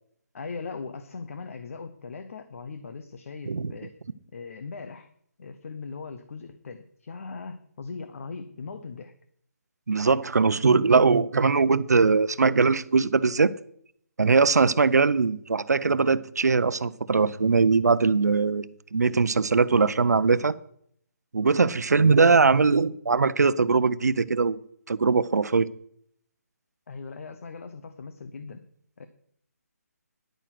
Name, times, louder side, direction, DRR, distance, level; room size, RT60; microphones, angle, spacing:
voice 1, 0.3-4.0 4.3-5.1 5.4-9.1 26.9-28.6 29.0-29.1, left 4 dB, 55° left, 1.0 m, -39 dB
voice 2, 9.9-13.5 14.2-20.5 21.3-24.6 24.9-25.7, right 4 dB, 85° right, 0.8 m, -21 dB
10.5 x 9.2 x 6.0 m
hypercardioid pair, 160°, 9 cm